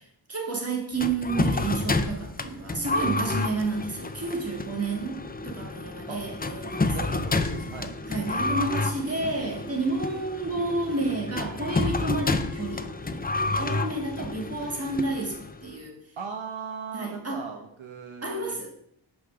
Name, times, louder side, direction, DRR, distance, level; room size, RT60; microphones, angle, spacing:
voice 1, 0.3-7.2 8.1-16.0 16.9-17.4 18.2-18.7, right 3 dB, 30° right, 0 dB, 2.0 m, -31 dB
sound 1, 1.0-15.7, left 3 dB, 20° left, 0.5 m, -30 dB
voice 2, 6.9-8.0 16.2-18.7, right 5 dB, 80° right, 3 dB, 1.1 m, -38 dB
5.6 x 5.0 x 6.3 m, 0.69 s
wide cardioid pair, 90°, 46 cm